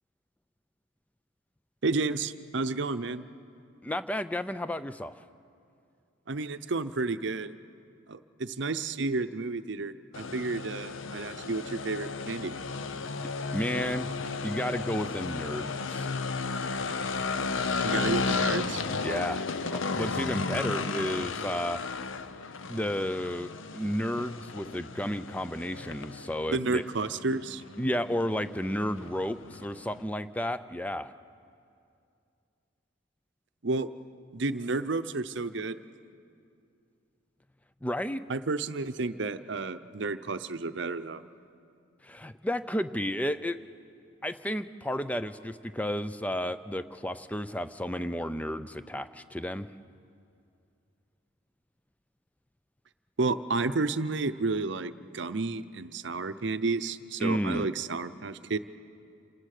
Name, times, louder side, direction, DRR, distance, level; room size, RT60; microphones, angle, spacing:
voice 1, 1.8-3.2 6.3-7.5 8.1-12.5 17.8-18.9 26.5-27.6 33.6-33.9 34.3-35.8 38.3-41.2 53.2-58.6, right 3 dB, 60° right, 11 dB, 0.7 m, -31 dB
voice 2, 3.8-5.3 13.5-14.1 14.4-16.1 19.0-21.8 22.7-26.8 27.8-31.1 37.8-38.2 42.0-43.6 44.2-49.7 57.2-57.7, equal, 5° left, 12 dB, 0.4 m, -32 dB
sound 1, 10.1-30.0, left 4 dB, 75° left, 0.7 m, -34 dB
27.5 x 18.5 x 6.6 m, 2.5 s
head